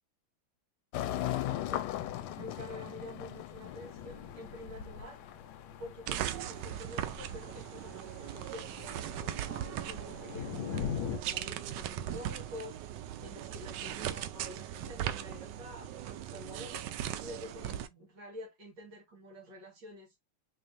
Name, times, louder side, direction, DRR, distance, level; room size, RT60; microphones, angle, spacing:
sound 1, 0.9-6.6, left 13 dB, 90° left, 1.5 m, -38 dB
voice 1, 2.4-5.2 5.8-20.2, left 1 dB, 60° right, 2.3 m, -48 dB
sound 2, 3.6-11.2, left 7 dB, 75° left, 1.4 m, -43 dB
sound 3, 6.1-17.9, right 11 dB, 75° right, 1.0 m, -39 dB
4.4 x 3.0 x 2.6 m
omnidirectional pair, 2.3 m